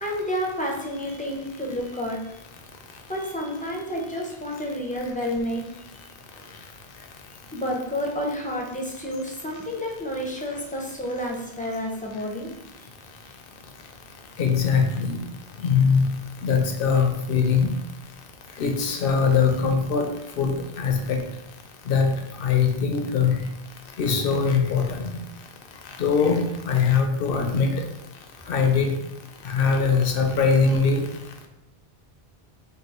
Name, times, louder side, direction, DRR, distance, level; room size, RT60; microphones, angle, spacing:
voice 1, 0.0-2.2 3.1-5.6 7.5-12.5, equal, 10° left, -2 dB, 0.4 m, -30 dB
voice 2, 14.4-15.2 15.6-16.1 16.4-17.7 18.6-20.1 20.4-20.5 20.8-21.2 21.9-22.1 22.4-23.4 24.0-25.1 26.0-27.7 28.5-28.9 29.5-31.0, left 5 dB, 70° left, 4 dB, 0.8 m, -21 dB
3.8 x 2.3 x 4.1 m, 0.86 s
omnidirectional pair, 1.0 m